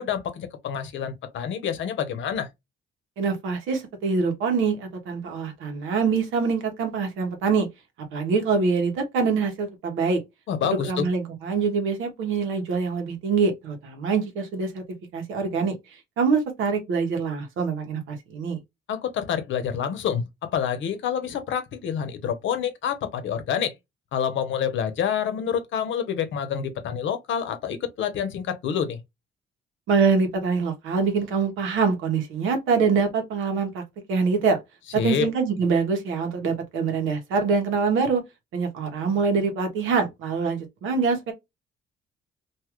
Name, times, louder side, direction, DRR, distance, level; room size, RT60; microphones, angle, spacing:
voice 1, 0.0-2.5 10.5-11.1 18.9-23.7 24.1-29.0 35.0-35.3, left 8 dB, 75° left, 0.8 m, -27 dB
voice 2, 3.2-7.7 8.1-10.2 10.6-14.8 15.1-15.7 16.2-18.6 29.9-33.8 34.1-34.6 34.9-38.2 38.5-41.3, right 5 dB, 90° right, 1.1 m, -24 dB
2.7 x 2.4 x 2.9 m
cardioid pair, 90°, 20 cm